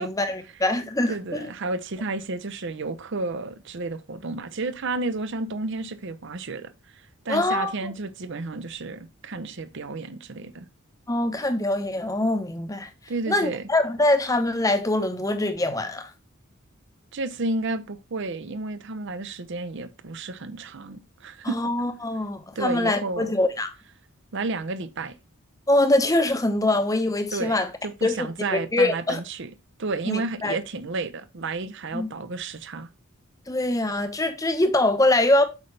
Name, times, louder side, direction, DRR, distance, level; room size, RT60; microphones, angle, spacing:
voice 1, 0.0-1.4 7.3-7.9 11.1-12.9 13.3-16.1 21.4-23.7 25.7-27.7 28.0-29.2 30.1-30.6 31.9-32.1 33.5-35.4, left 1 dB, 15° left, 0.8 m, -23 dB
voice 2, 1.1-10.6 13.1-13.7 17.1-21.6 22.6-23.3 24.3-25.1 27.3-27.6 27.8-29.5 29.8-32.9, right 3 dB, 55° right, 0.6 m, -31 dB
8.2 x 5.4 x 3.3 m
head